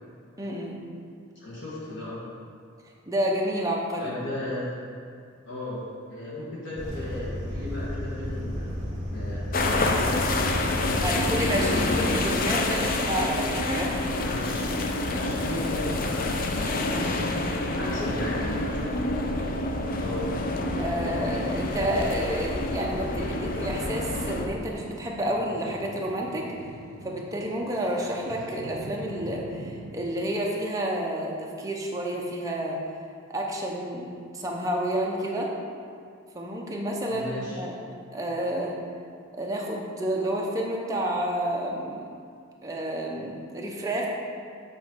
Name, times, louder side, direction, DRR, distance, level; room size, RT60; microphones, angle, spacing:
voice 1, 0.4-0.8 3.1-4.1 11.0-13.9 17.8-18.3 20.8-26.5 27.0-32.8 33.3-35.5 36.3-37.7 38.1-38.8 39.3-42.0 42.6-44.1, right 1 dB, 15° right, -2 dB, 0.7 m, -30 dB
voice 2, 1.3-2.2 4.0-4.8 5.4-5.8 6.1-8.7 9.1-10.3 10.7-11.4 14.2-14.7 15.0-17.2 17.8-19.0 19.9-20.3 37.1-37.6, left 1 dB, 60° left, -9 dB, 1.5 m, -36 dB
sound 1, 6.8-12.0, equal, 40° right, 1.1 m, -33 dB
sound 2, 9.5-24.5, left 2 dB, 40° left, 0.4 m, -27 dB
Boat Water vehicle, 21.0-30.0, right 1 dB, 85° right, 0.6 m, -45 dB
7.0 x 3.1 x 6.1 m, 2.3 s
head